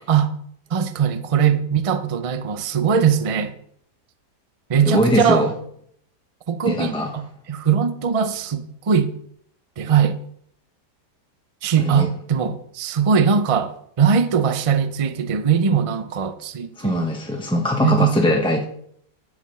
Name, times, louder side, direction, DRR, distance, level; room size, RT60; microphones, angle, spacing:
voice 1, 0.7-3.6 4.7-5.5 6.5-9.1 9.8-10.2 11.6-17.1 17.8-18.1, right 7 dB, 60° right, 0.3 m, -20 dB
voice 2, 4.9-5.5 6.7-7.1 11.8-12.1 16.8-18.6, left 1 dB, 5° left, 0.7 m, -21 dB
9.7 x 7.1 x 5.5 m
omnidirectional pair, 1.8 m